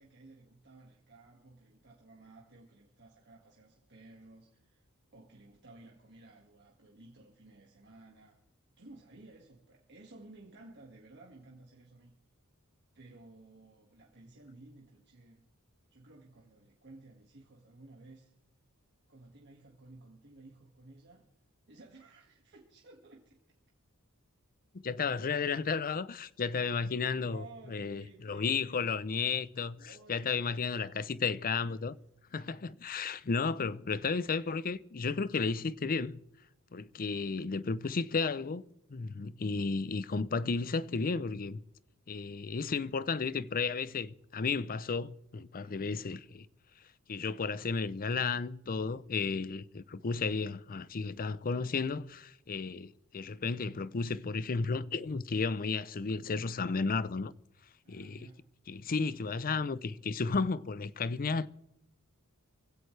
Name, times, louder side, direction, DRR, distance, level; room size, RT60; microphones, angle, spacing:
voice 1, 0.0-4.9 5.1-8.4 8.8-12.1 12.9-15.4 15.9-18.3 19.1-21.3 21.7-23.4 27.2-28.9 29.8-30.6 31.7-31.9 32.7-32.8 45.6-45.9 57.8-58.6, right 2 dB, 50° right, 1.9 m, -55 dB
voice 2, 24.8-29.8 30.1-31.9 32.3-36.2 36.7-38.6 38.9-41.6 42.1-46.5 47.1-57.3 57.9-58.3 58.7-61.5, left 4 dB, 40° left, 0.6 m, -33 dB
21.5 x 16.0 x 3.3 m
head